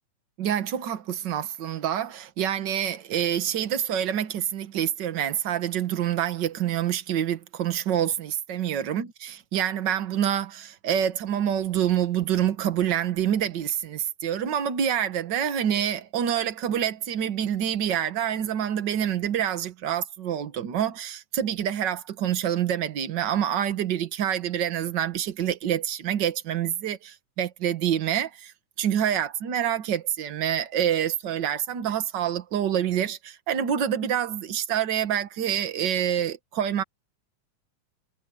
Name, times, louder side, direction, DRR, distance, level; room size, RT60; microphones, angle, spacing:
voice 1, 0.4-9.1 9.5-28.5 28.8-36.8, right 9 dB, 55° right, 1.3 m, -27 dB
omnidirectional pair, 3.5 m